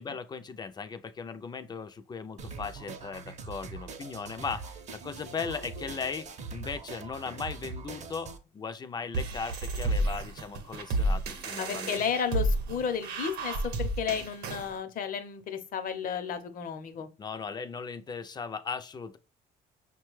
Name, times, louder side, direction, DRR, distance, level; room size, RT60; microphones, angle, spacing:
voice 1, 0.0-12.0 17.2-19.2, left 5 dB, 25° left, 0.4 m, -38 dB
sound 1, 2.4-8.4, right 4 dB, 45° right, 0.6 m, -42 dB
sound 2, 9.1-14.7, right 1 dB, 80° right, 0.7 m, -31 dB
voice 2, 11.6-17.1, left 7 dB, 55° left, 0.7 m, -33 dB
5.7 x 2.2 x 3.1 m
cardioid pair, 110°, 17 cm